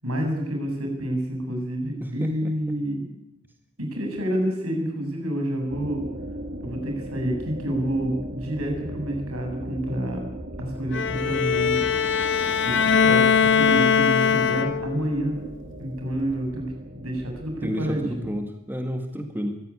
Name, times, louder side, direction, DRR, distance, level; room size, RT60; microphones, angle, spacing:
voice 1, 0.0-3.0 3.8-6.0 6.6-10.2 10.6-11.8 12.6-15.4 15.8-18.2, right 1 dB, 70° right, 2 dB, 7.5 m, -28 dB
voice 2, 2.0-2.5 17.6-19.6, equal, 10° right, 5 dB, 1.8 m, -31 dB
sound 1, 5.7-18.3, right 1 dB, 40° right, 2.8 m, -38 dB
Bowed string instrument, 10.9-15.1, left 6 dB, 55° left, 1.6 m, -21 dB
23.5 x 15.0 x 9.8 m, 0.83 s
head